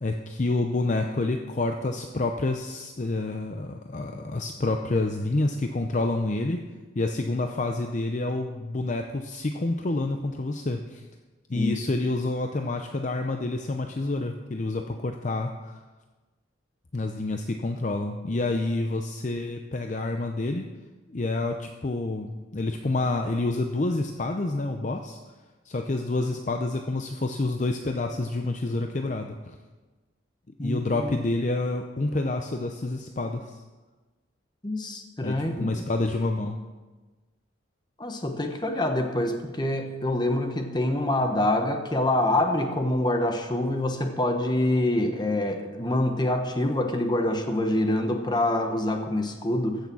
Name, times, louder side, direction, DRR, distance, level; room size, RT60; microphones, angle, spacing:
voice 1, 0.0-6.6 6.9-11.0 11.5-15.8 16.9-20.6 21.1-25.2 25.6-29.6 30.6-33.6 35.2-36.6, left 2 dB, 40° left, 5 dB, 0.6 m, -28 dB
voice 2, 30.6-31.1 34.6-35.8 38.0-49.8, left 1 dB, 25° left, 5 dB, 1.1 m, -26 dB
15.5 x 6.6 x 6.1 m, 1.3 s
head